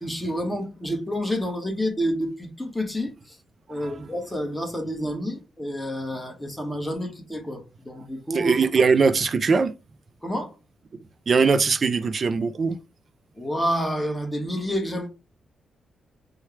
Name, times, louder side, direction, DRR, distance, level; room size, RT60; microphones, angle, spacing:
voice 1, 0.0-3.4 3.7-8.5 10.2-10.5 13.4-15.1, equal, 10° left, 1.3 m, -29 dB
voice 2, 8.3-9.7 11.3-12.8, right 5 dB, 45° right, 0.5 m, -21 dB
4.4 x 2.3 x 3.2 m
cardioid pair, 95°, 0 cm